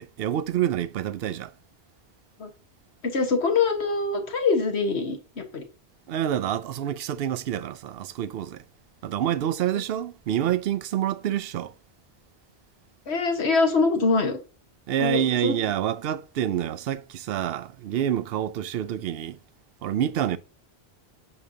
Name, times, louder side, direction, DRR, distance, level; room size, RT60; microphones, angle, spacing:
voice 1, 0.0-1.5 6.1-8.6 9.0-11.7 14.9-19.4 19.8-20.4, right 11 dB, 70° right, 0.8 m, -27 dB
voice 2, 3.0-5.6 9.7-9.8 13.1-14.4 15.0-15.6, left 4 dB, 80° left, 1.6 m, -24 dB
8.5 x 6.3 x 2.7 m
omnidirectional pair, 1.1 m